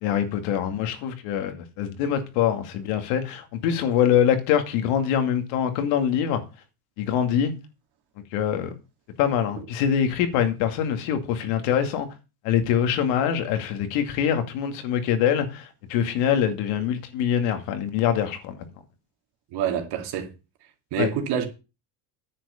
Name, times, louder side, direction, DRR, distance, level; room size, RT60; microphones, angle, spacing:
voice 1, 0.0-6.4 7.0-7.5 8.3-8.7 9.2-12.1 12.4-18.6 21.0-21.1, left 9 dB, 85° left, 2.4 m, -24 dB
voice 2, 19.5-20.3 20.9-21.5, right 8 dB, 60° right, 2.4 m, -26 dB
9.9 x 6.2 x 7.0 m
cardioid pair, 150°, 44 cm